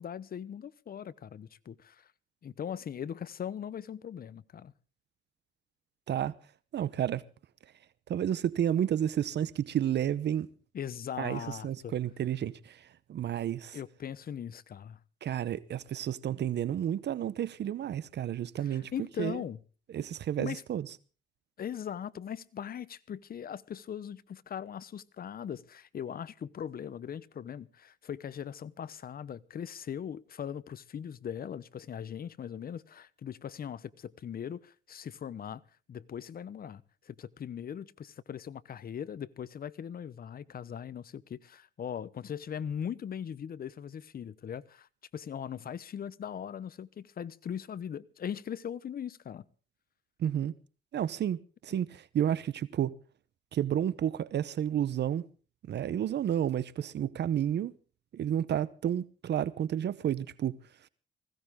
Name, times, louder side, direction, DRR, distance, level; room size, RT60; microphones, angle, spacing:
voice 1, 0.0-2.1 2.4-4.7 10.7-11.9 13.7-15.0 18.6-19.6 20.4-20.6 21.6-35.6 35.9-44.9 45.1-49.4, left 8 dB, 50° left, 0.9 m, -40 dB
voice 2, 6.7-7.2 8.1-10.5 11.2-13.8 15.2-18.9 19.2-19.4 19.9-20.9 50.2-50.5 50.9-52.9 53.5-55.3 55.7-57.7 58.1-60.6, right 10 dB, 60° right, 0.8 m, -31 dB
20.0 x 16.0 x 3.7 m
cardioid pair, 90°, 20 cm